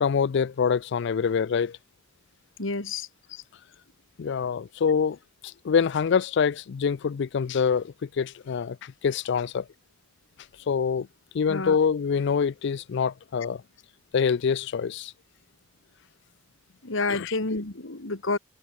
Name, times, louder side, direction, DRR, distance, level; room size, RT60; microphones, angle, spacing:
voice 1, 0.0-1.8 4.2-5.2 5.4-9.7 10.7-11.1 11.3-13.6 14.1-15.1 17.1-17.4, left 6 dB, 60° left, 0.4 m, -25 dB
voice 2, 2.6-3.1 11.5-11.8 16.8-18.4, left 3 dB, 85° left, 2.2 m, -29 dB
head